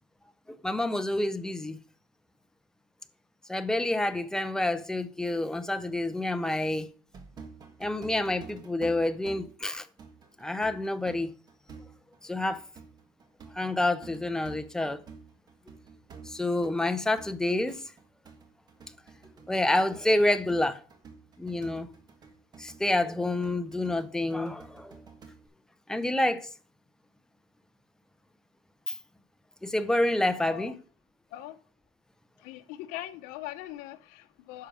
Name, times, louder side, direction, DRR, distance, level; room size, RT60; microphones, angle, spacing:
voice 1, 0.6-1.8 3.5-6.9 7.8-9.9 10.4-11.3 12.2-12.6 13.5-15.0 16.3-17.9 19.5-20.8 21.4-21.9 22.6-25.0 25.9-26.5 28.9-29.0 29.6-30.7, left 1 dB, 5° left, 0.6 m, -28 dB
sound 1, 7.1-25.5, right 5 dB, 30° right, 1.4 m, -50 dB
voice 2, 30.4-30.7 31.3-31.6 32.4-34.7, left 14 dB, 85° left, 0.7 m, -41 dB
10.5 x 6.2 x 4.9 m
cardioid pair, 155°, 14 cm